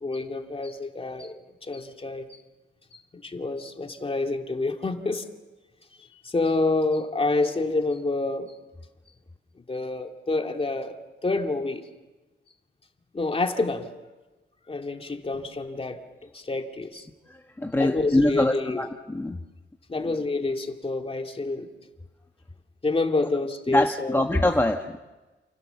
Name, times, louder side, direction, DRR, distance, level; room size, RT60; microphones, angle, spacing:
voice 1, 0.0-1.3 1.6-2.3 3.2-5.3 6.2-8.5 9.7-11.0 11.2-11.9 13.1-13.9 14.7-16.0 16.3-17.1 17.8-18.9 19.9-21.7 22.8-24.2, left 3 dB, 30° left, 4 dB, 2.5 m, -28 dB
voice 2, 17.6-19.4 23.7-25.0, left 1 dB, 10° left, 3 dB, 1.3 m, -23 dB
29.0 x 28.5 x 7.0 m, 1.2 s
wide cardioid pair, 125°, 19 cm